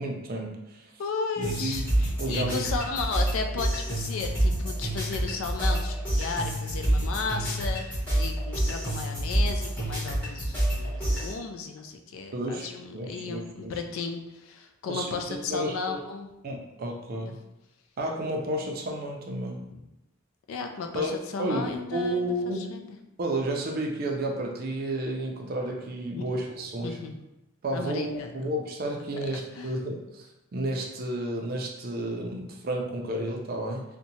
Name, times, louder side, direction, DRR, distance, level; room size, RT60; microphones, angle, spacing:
voice 1, 0.0-0.9 1.4-1.9 2.2-2.6 12.3-13.7 14.9-16.0 16.4-17.3 18.0-19.6 20.9-22.7 23.2-27.0 27.6-33.8, right 1 dB, 45° right, 1 dB, 0.4 m, -32 dB
voice 2, 1.0-16.3 17.2-17.3 19.7-19.8 20.5-23.0 26.2-26.3 26.8-27.1 27.7-28.3 29.3-29.7, left 4 dB, 70° left, 5 dB, 0.3 m, -34 dB
sound 1, 1.4-11.3, right 1 dB, 5° left, 1.2 m, -28 dB
2.7 x 2.1 x 2.7 m, 0.93 s
head